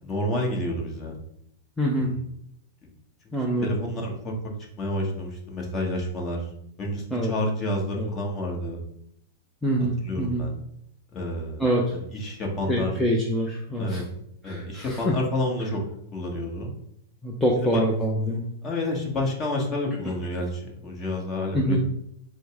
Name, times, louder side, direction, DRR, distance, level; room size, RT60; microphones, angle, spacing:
voice 1, 0.0-1.1 1.9-2.2 3.6-4.3 4.8-6.4 6.8-8.8 10.0-10.5 11.1-12.9 13.7-14.0 14.4-15.8 16.1-16.7 17.6-17.8 18.6-21.8, left 1 dB, 25° left, 0 dB, 1.2 m, -29 dB
voice 2, 1.8-2.1 3.3-3.8 7.1-7.3 8.0-8.1 9.6-10.4 11.6-11.8 12.7-14.0 14.4-15.1 17.2-18.4 21.5-21.8, equal, 5° left, -2 dB, 0.6 m, -25 dB
5.1 x 2.0 x 4.7 m, 0.73 s
hypercardioid pair, 140°, 0 cm